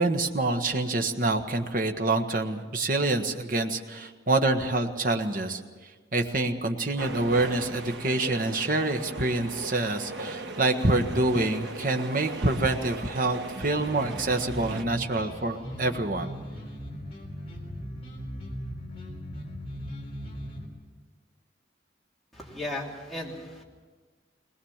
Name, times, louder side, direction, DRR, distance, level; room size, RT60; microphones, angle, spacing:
voice 1, 0.0-5.6 6.1-16.3, right 2 dB, 50° right, 5 dB, 1.4 m, -26 dB
sound 1, 7.0-14.8, right 2 dB, 75° right, 1.4 m, -39 dB
sound 2, 13.6-20.7, equal, 35° left, 3.8 m, -39 dB
voice 2, 22.3-23.6, left 1 dB, ahead, -4 dB, 3.0 m, -36 dB
20.5 x 20.5 x 7.3 m, 1.4 s
head